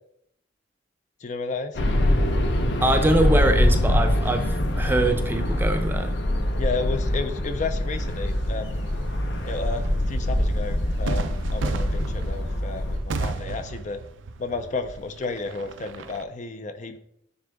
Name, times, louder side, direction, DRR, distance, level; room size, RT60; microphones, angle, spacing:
voice 1, 1.2-1.8 6.6-8.9 9.4-14.0 14.4-17.0, left 4 dB, 40° left, 8 dB, 0.4 m, -32 dB
sound 1, 1.7-13.0, left 1 dB, 65° left, 0.8 m, -24 dB
voice 2, 2.8-6.2, right 1 dB, 10° right, 5 dB, 0.6 m, -23 dB
sound 2, 8.0-16.2, right 3 dB, 85° right, 0.5 m, -35 dB
9.7 x 3.7 x 3.4 m, 0.73 s
head